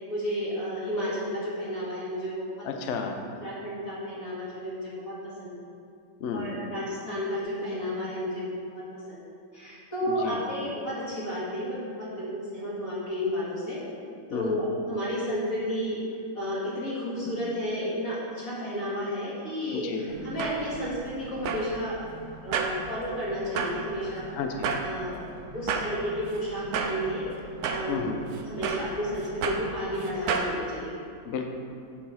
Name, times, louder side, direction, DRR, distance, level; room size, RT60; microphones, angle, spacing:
voice 1, 0.1-2.6 2.9-3.0 3.4-5.6 6.3-8.8 9.1-9.2 9.5-13.8 14.3-16.0 16.3-22.0 22.4-24.3 24.8-25.2 25.5-28.1 28.4-30.9, equal, 45° left, -9 dB, 2.5 m, -32 dB
voice 2, 2.6-3.2 6.2-6.5 10.1-10.4 14.3-14.6 19.7-20.1 24.3-24.7 27.9-28.2 31.2-31.5, left 5 dB, 70° left, 4 dB, 0.6 m, -32 dB
sound 1, 20.1-30.5, right 5 dB, 70° right, 0.9 m, -34 dB
7.3 x 4.5 x 5.8 m, 2.4 s
omnidirectional pair, 2.1 m